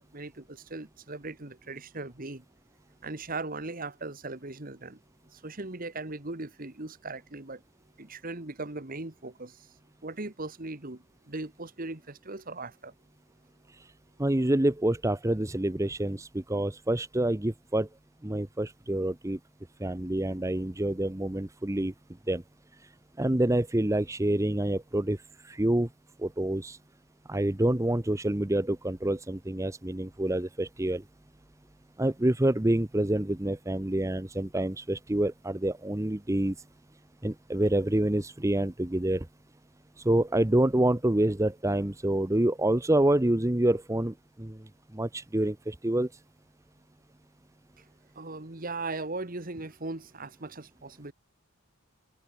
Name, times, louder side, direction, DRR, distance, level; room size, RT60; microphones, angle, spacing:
voice 1, 0.0-2.4 3.0-5.0 5.3-7.6 8.0-9.7 10.0-12.9 48.1-51.1, right 2 dB, 40° right, 1.7 m, -38 dB
voice 2, 14.2-17.9 18.2-19.4 19.8-21.9 22.3-22.4 23.2-25.2 25.4-25.9 26.2-26.8 27.3-31.0 32.0-36.5 37.2-39.3 40.0-44.6 44.9-46.1, right 1 dB, 15° right, 0.7 m, -27 dB
head